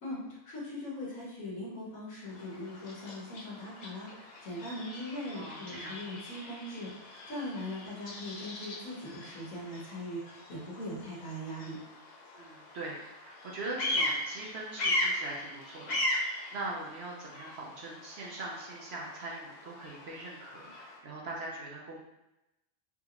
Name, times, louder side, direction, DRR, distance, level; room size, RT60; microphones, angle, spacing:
voice 1, 0.0-11.8, left 1 dB, 80° left, -8 dB, 1.4 m, -40 dB
Bird vocalization bird call bird song, 2.2-21.0, left 1 dB, 50° left, 0.5 m, -39 dB
voice 2, 5.3-5.9 12.3-22.0, right 2 dB, 60° right, -3 dB, 0.8 m, -42 dB
3.6 x 2.5 x 2.9 m, 0.94 s
omnidirectional pair, 1.4 m